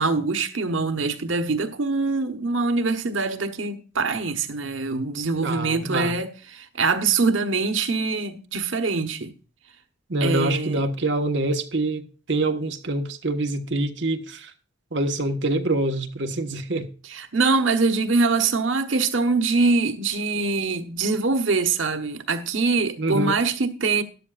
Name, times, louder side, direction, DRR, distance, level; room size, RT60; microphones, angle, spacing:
voice 1, 0.0-9.3 10.2-10.8 17.1-24.0, right 4 dB, 90° right, 1.2 m, -23 dB
voice 2, 5.4-6.2 10.1-14.5 14.9-16.9 23.0-23.4, right 2 dB, 65° right, 1.3 m, -25 dB
13.5 x 11.0 x 2.4 m
head